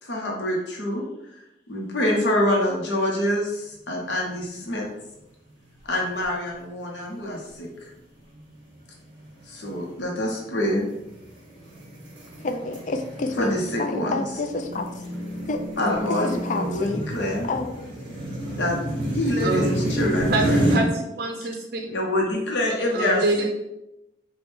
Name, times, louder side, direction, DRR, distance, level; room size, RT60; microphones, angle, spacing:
voice 1, 0.0-1.1 1.7-4.9 5.9-7.9 9.5-10.9 13.4-14.2 15.8-17.5 18.6-18.8 19.1-20.6 21.9-23.2, left 1 dB, 85° left, -1 dB, 0.8 m, -26 dB
sound 1, 4.3-4.8 5.2-5.3 6.0-6.5 7.0-7.3 7.9-20.8, right 1 dB, 30° right, 1.0 m, -30 dB
voice 2, 12.4-15.0 15.5-15.6 16.1-17.0 17.5-17.8 18.1-18.2, left 2 dB, 45° left, 7 dB, 0.4 m, -29 dB
voice 3, 19.4-19.7 20.3-20.4 20.7-21.9 22.9-23.4, right 2 dB, 55° right, 2 dB, 0.5 m, -25 dB
3.4 x 2.2 x 4.3 m, 0.90 s
head